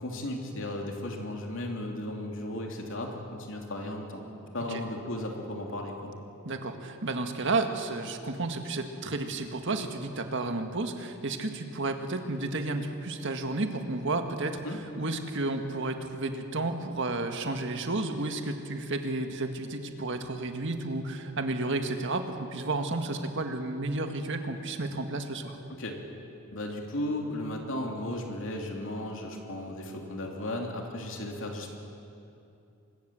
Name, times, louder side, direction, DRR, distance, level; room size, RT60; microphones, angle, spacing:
voice 1, 0.0-4.2 4.5-6.1 14.6-14.8 25.8-26.0 26.5-31.7, left 1 dB, 60° left, 1 dB, 3.1 m, -35 dB
voice 2, 6.4-14.6 15.0-25.6, right 2 dB, 55° right, 6 dB, 1.8 m, -32 dB
24.5 x 20.5 x 7.7 m, 2.7 s
head